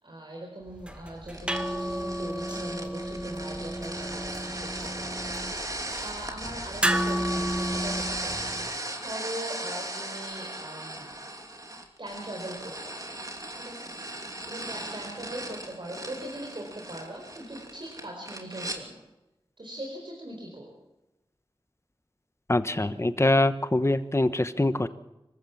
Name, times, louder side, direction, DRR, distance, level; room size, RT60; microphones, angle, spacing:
voice 1, 0.0-11.1 12.0-13.2 13.5-19.0 19.6-20.7, right 1 dB, 60° right, 0 dB, 4.5 m, -41 dB
sound 1, 0.7-8.7, equal, 10° right, 1.7 m, -32 dB
sound 2, 1.3-18.8, right 1 dB, 40° right, 2.8 m, -37 dB
voice 2, 22.5-24.9, left 2 dB, 30° left, 12 dB, 1.1 m, -24 dB
25.5 x 14.5 x 7.3 m, 0.97 s
wide cardioid pair, 50°, 10 cm